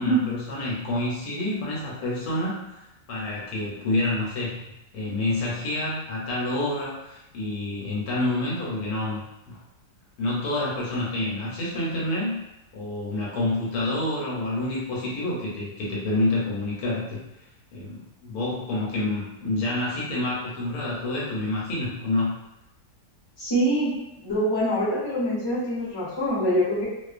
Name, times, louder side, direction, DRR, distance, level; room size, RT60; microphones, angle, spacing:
voice 1, 0.0-2.8 3.1-4.6 4.9-9.2 9.5-9.6 10.2-12.4 12.7-17.2 17.7-22.3, left 2 dB, 75° left, -5 dB, 1.2 m, -28 dB
voice 2, 23.4-23.9 24.2-26.8, right 1 dB, 20° left, -9 dB, 0.7 m, -24 dB
2.4 x 2.4 x 2.4 m, 0.89 s
omnidirectional pair, 1.7 m